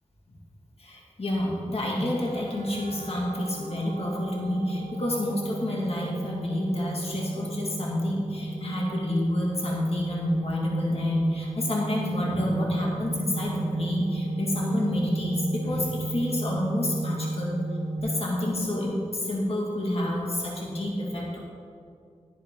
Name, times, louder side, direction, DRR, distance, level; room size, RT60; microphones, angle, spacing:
voice 1, 0.8-17.6 18.0-21.4, left 1 dB, 55° left, -4 dB, 2.6 m, -28 dB
sound 1, 2.0-18.0, right 2 dB, 65° right, 1.4 m, -35 dB
11.0 x 10.5 x 3.9 m, 2.4 s
cardioid pair, 50°, 12 cm